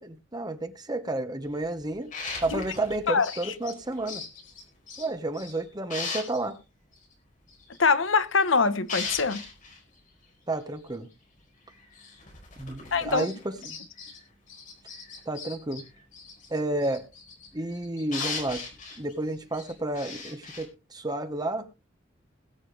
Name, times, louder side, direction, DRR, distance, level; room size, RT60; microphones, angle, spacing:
voice 1, 0.0-2.1 2.4-4.2 5.0-6.6 10.5-11.1 12.6-13.3 13.6-13.8 15.2-15.8 16.5-17.0 17.5-18.6 19.0-21.7, right 2 dB, 20° right, 1.3 m, -31 dB
sound 1, 1.4-5.6 5.9-6.5 6.9-7.0 7.5-8.5 8.8-9.8 10.6-10.7 10.9-11.0 11.7-14.2 14.5-20.6, left 4 dB, 40° left, 4.7 m, -39 dB
voice 2, 7.8-9.4 12.9-13.3, left 4 dB, 85° left, 1.1 m, -23 dB
21.5 x 7.2 x 3.4 m
head